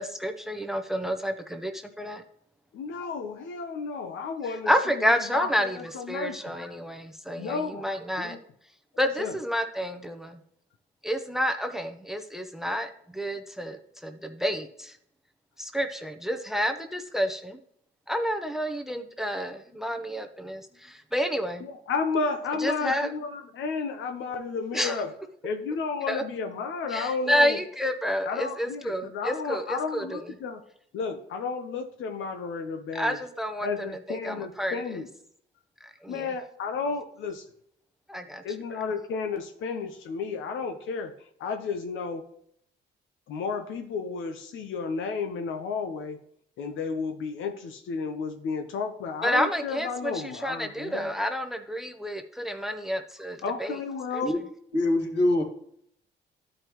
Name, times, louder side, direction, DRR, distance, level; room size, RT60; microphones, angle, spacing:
voice 1, 0.0-2.2 4.7-8.4 9.0-10.4 11.0-15.0 15.6-17.6 18.1-21.7 22.6-23.1 24.7-25.0 26.1-26.2 26.9-30.2 32.9-35.0 35.8-36.3 38.1-38.4 49.2-53.8 54.1-54.2, equal, ahead, 7 dB, 0.8 m, -29 dB
voice 2, 2.7-4.7 5.3-5.7 5.9-6.4 7.4-7.8 8.2-8.4 9.2-9.3 21.6-25.1 25.4-27.6 28.3-30.6 30.9-33.2 33.6-35.1 36.1-37.4 38.4-41.1 41.4-42.2 43.3-46.2 46.6-51.1 53.4-54.3, left 5 dB, 80° left, 5 dB, 0.8 m, -32 dB
voice 3, 54.7-55.4, left 1 dB, 60° left, 1 dB, 2.0 m, -23 dB
12.0 x 5.0 x 3.0 m, 0.68 s
cardioid pair, 90°, 20 cm